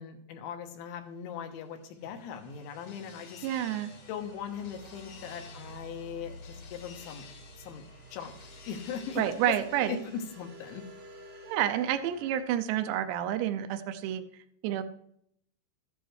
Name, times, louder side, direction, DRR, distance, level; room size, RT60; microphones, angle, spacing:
voice 1, 0.0-3.5 4.1-7.3 7.6-7.9 8.1-8.4 8.7-9.6 9.9-10.9, left 7 dB, 85° left, 5 dB, 3.5 m, -39 dB
sound 1, 1.6-10.8, left 6 dB, 65° left, 1.8 m, -54 dB
sound 2, 2.0-12.4, equal, 65° right, 1.4 m, -50 dB
voice 2, 3.4-3.9 9.2-10.0 11.4-14.8, right 11 dB, 80° right, 10 dB, 2.7 m, -29 dB
14.0 x 10.0 x 3.2 m, 0.71 s
omnidirectional pair, 5.3 m